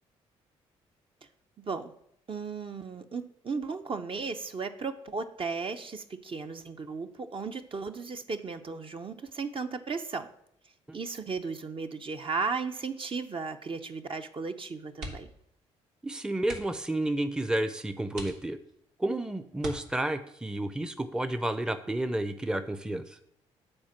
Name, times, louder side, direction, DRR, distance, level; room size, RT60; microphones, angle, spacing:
voice 1, 2.3-10.3 10.9-15.3, right 4 dB, 40° right, 6 dB, 0.8 m, -35 dB
sound 1, 14.9-15.5 15.8-15.9 16.4-16.9 17.5-17.6 18.1-18.9 19.6-20.3 21.9-22.2 22.6-22.7, equal, 85° right, 1.7 m, -42 dB
voice 2, 16.0-18.6 19.0-23.2, right 1 dB, 5° right, 10 dB, 0.6 m, -31 dB
8.8 x 4.2 x 6.0 m, 0.71 s
hypercardioid pair, 50°, 14 cm